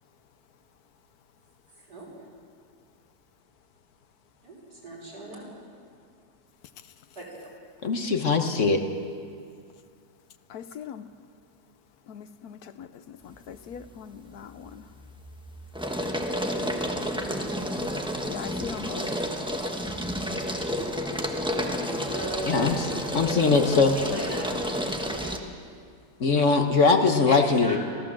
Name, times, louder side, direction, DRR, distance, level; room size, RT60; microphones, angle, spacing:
voice 1, 4.4-5.5 7.2-7.5 21.5-21.7 22.1-22.6 23.7-24.5 25.1-25.3 27.3-27.8, right 2 dB, 85° right, -3 dB, 6.1 m, -37 dB
voice 2, 7.8-8.8 22.4-22.8 23.1-24.0 26.2-27.8, left 4 dB, 50° left, 5 dB, 1.5 m, -21 dB
voice 3, 10.5-11.1 12.1-14.9 18.3-19.2, left 8 dB, 70° left, 12 dB, 1.2 m, -41 dB
sound 1, 13.4-13.9 14.3-25.4, equal, 5° right, 1.1 m, -31 dB
23.5 x 16.0 x 7.6 m, 2.2 s
omnidirectional pair, 1.7 m